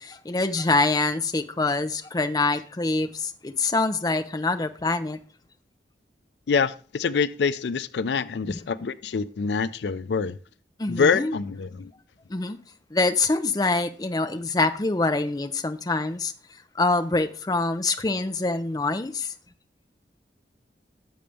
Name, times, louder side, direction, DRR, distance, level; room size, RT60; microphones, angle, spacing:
voice 1, 0.0-5.2 8.5-8.6 10.8-11.4 12.3-12.6 12.9-16.3 16.7-19.3, left 3 dB, 20° left, 0.5 m, -25 dB
voice 2, 6.5-10.4 10.9-11.9, left 5 dB, 80° left, 0.4 m, -25 dB
10.5 x 7.0 x 3.4 m
head